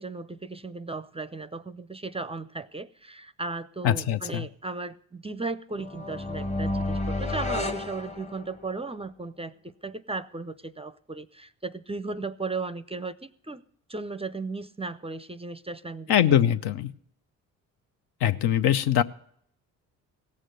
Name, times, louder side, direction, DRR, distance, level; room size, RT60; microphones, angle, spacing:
voice 1, 0.0-13.6 13.9-16.2, right 3 dB, 15° right, 0.5 m, -36 dB
voice 2, 3.8-4.5 16.1-16.9 18.2-19.0, left 10 dB, 65° left, 0.7 m, -22 dB
sound 1, 5.8-8.8, left 2 dB, 15° left, 1.1 m, -31 dB
17.0 x 6.5 x 7.7 m
hypercardioid pair, 50°, 41 cm